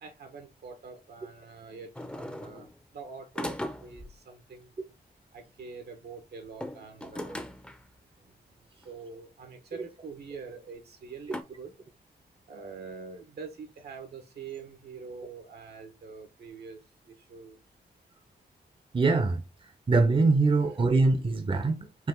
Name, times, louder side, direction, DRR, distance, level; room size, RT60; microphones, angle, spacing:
voice 1, 0.0-2.7 2.9-4.7 5.3-7.4 8.8-11.7 12.5-16.8 17.1-17.6 20.6-20.7, right 5 dB, 80° right, 1.2 m, -45 dB
sound 1, 1.9-2.8 3.3-4.2 6.5-7.9 8.8-8.9 9.7-9.8 11.3-11.4, left 1 dB, 5° left, 0.6 m, -38 dB
voice 2, 18.9-19.4 19.9-22.1, right 3 dB, 30° right, 0.7 m, -23 dB
4.8 x 2.5 x 3.8 m
cardioid pair, 80°, 16 cm